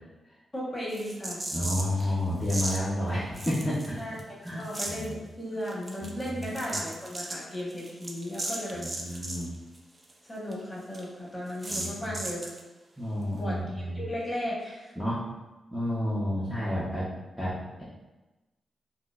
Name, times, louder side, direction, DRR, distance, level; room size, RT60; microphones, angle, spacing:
voice 1, 0.5-1.4 2.0-2.1 4.0-9.2 10.2-12.5 13.4-14.9, equal, 20° left, -5 dB, 1.1 m, -36 dB
sound 1, 0.9-2.0 2.5-2.8 3.4-4.2 4.5-5.1 5.7-9.5 9.8-9.9 10.1-10.2 10.5-10.6 10.9-11.0 11.6-12.6, right 2 dB, 30° right, 0.5 m, -36 dB
voice 2, 1.5-4.0 4.4-5.2 6.0-6.4 8.7-9.5 11.7-12.2 13.0-14.0 15.0-15.2 15.7-17.1 17.4-17.8, left 1 dB, 5° left, -9 dB, 0.7 m, -31 dB
4.2 x 2.0 x 2.4 m, 1.1 s
cardioid pair, 70°, 0 cm